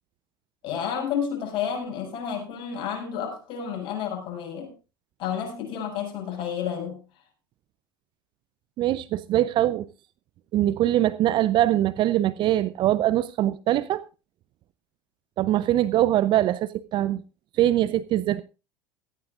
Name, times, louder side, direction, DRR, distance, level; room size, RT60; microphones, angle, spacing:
voice 1, 0.6-4.7 5.2-7.0, left 8 dB, 50° left, 7.1 m, -30 dB
voice 2, 8.8-9.9 10.5-14.0 15.4-17.2 17.6-18.4, right 13 dB, 45° right, 0.7 m, -22 dB
17.5 x 15.5 x 2.5 m
hypercardioid pair, 75°, 11 cm